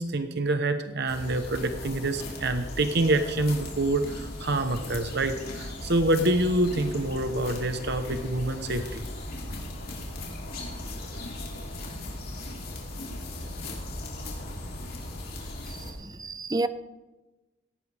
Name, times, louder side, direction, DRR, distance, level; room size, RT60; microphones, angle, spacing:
voice 1, 0.0-9.0, right 2 dB, 60° right, 1.0 m, -26 dB
sound 1, 1.1-15.9, left 1 dB, 55° left, 3.3 m, -37 dB
voice 2, 15.7-16.7, right 2 dB, 20° right, 0.5 m, -31 dB
18.0 x 16.0 x 3.5 m
head